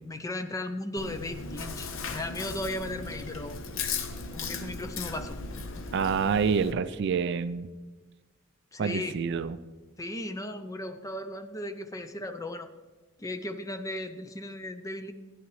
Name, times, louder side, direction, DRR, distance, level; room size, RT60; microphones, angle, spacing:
voice 1, 0.0-3.6 4.3-5.4 8.7-9.2 10.0-12.7 13.2-15.1, left 1 dB, 15° left, 8 dB, 0.5 m, -36 dB
Chewing mastication, 1.0-6.7, left 4 dB, 60° left, 0.7 m, -37 dB
voice 2, 5.9-7.7 8.8-9.6, right 6 dB, 55° right, 14 dB, 0.3 m, -27 dB
13.0 x 11.0 x 3.1 m, 1.3 s
head